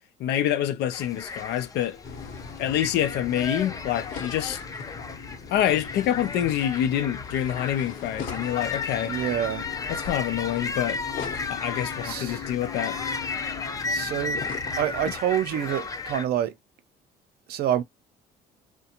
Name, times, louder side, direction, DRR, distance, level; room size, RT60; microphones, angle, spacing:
voice 1, 0.2-2.0 2.6-4.6 5.5-9.2 9.9-11.0 11.5-13.0, left 11 dB, 80° left, 0.5 m, -26 dB
sound 1, 0.9-16.2, left 4 dB, 20° left, 0.4 m, -34 dB
sound 2, 2.0-15.2, left 6 dB, 50° left, 0.9 m, -39 dB
voice 2, 9.1-9.6 12.0-12.4 13.9-14.4 14.8-16.5 17.5-17.8, right 11 dB, 65° right, 0.5 m, -27 dB
2.4 x 2.2 x 2.8 m
cardioid pair, 110°, 17 cm